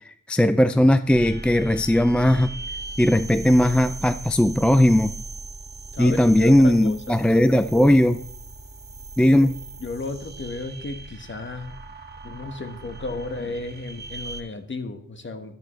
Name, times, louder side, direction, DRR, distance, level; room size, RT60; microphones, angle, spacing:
voice 1, 0.1-2.5 3.0-5.1 6.0-8.2 9.2-9.6, left 1 dB, 5° left, 11 dB, 0.3 m, -18 dB
sound 1, 1.1-14.4, right 2 dB, 30° right, 1.2 m, -39 dB
voice 2, 5.9-7.2 9.3-9.5 9.8-11.7 12.2-15.6, left 3 dB, 35° left, 7 dB, 1.2 m, -34 dB
13.0 x 11.5 x 3.1 m, 0.67 s
wide cardioid pair, 170°, 34 cm